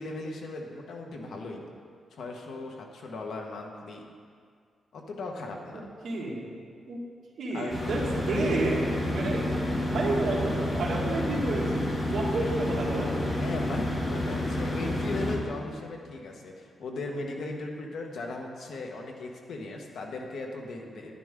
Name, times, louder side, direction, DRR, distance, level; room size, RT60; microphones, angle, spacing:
voice 1, 0.0-1.6 2.1-4.0 4.9-5.8 7.5-7.7 13.2-21.1, left 2 dB, 75° left, 1 dB, 1.3 m, -37 dB
voice 2, 6.0-6.5 6.9-7.0 7.4-9.5 9.9-13.1, right 2 dB, 65° right, -3 dB, 2.1 m, -30 dB
sound 1, 7.7-15.4, left 1 dB, 25° left, 1.8 m, -29 dB
10.5 x 10.0 x 3.7 m, 2.1 s
wide cardioid pair, 145°, 0 cm